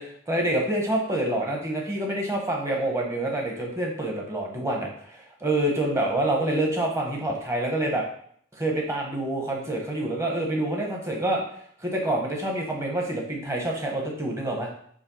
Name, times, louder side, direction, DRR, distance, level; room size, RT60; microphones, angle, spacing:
voice 1, 0.0-8.0 8.5-11.4 11.8-14.7, right 1 dB, 15° right, -1 dB, 1.4 m, -27 dB
8.0 x 3.2 x 5.6 m, 0.63 s
head